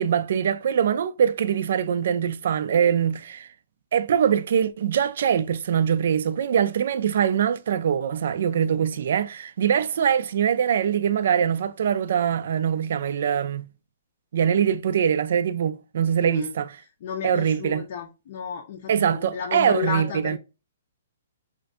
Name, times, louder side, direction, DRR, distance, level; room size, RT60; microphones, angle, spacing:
voice 1, 0.0-3.5 3.9-13.7 14.3-16.7 17.2-17.8 18.9-20.4, right 8 dB, 60° right, 0.3 m, -23 dB
voice 2, 16.2-16.5 17.0-20.4, left 7 dB, 45° left, 0.5 m, -32 dB
2.5 x 2.4 x 3.4 m
hypercardioid pair, 160°, 0 cm